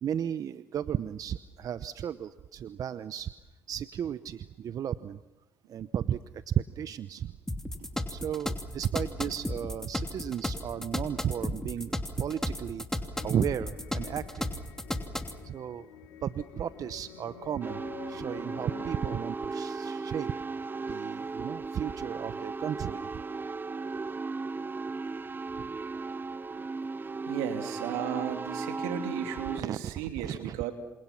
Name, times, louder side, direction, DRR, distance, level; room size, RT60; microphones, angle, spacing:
voice 1, 0.0-3.3 3.7-5.2 5.7-7.3 8.1-12.8 13.2-14.5 15.4-15.9 16.2-17.8 18.1-20.3 20.9-23.2 25.6-25.7 29.6-30.6, right 9 dB, 55° right, 13 dB, 0.9 m, -34 dB
sound 1, 7.5-15.4, left 1 dB, 5° left, 3.0 m, -34 dB
sound 2, 13.1-19.2, left 8 dB, 85° left, 3.2 m, -48 dB
sound 3, 17.6-29.6, right 4 dB, 30° right, 0.9 m, -36 dB
voice 2, 27.3-30.7, right 9 dB, 85° right, 5 dB, 2.9 m, -35 dB
28.0 x 27.5 x 5.9 m, 1.1 s
hypercardioid pair, 60°, 7 cm